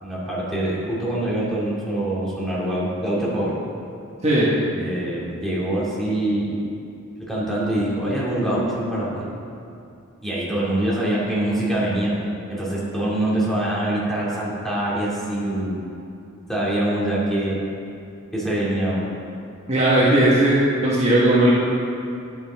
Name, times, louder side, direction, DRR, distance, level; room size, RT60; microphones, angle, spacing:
voice 1, 0.0-3.5 4.7-6.6 7.2-9.3 10.2-12.1 12.5-15.8 16.5-17.6 18.3-19.0, right 1 dB, ahead, -7 dB, 2.5 m, -24 dB
voice 2, 19.7-20.5 20.8-21.5, right 1 dB, 30° right, -7 dB, 1.6 m, -17 dB
13.0 x 9.0 x 3.6 m, 2.6 s
head